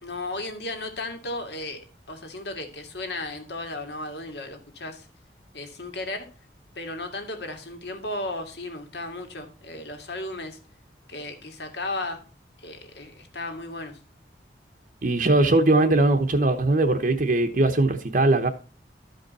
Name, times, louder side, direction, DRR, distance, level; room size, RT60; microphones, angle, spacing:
voice 1, 0.0-1.8 2.1-5.1 5.5-6.3 6.8-10.6 11.1-12.2 12.6-14.0, left 2 dB, 70° left, 2.1 m, -35 dB
voice 2, 15.0-18.5, right 2 dB, 50° right, 0.9 m, -20 dB
13.0 x 5.3 x 4.2 m
head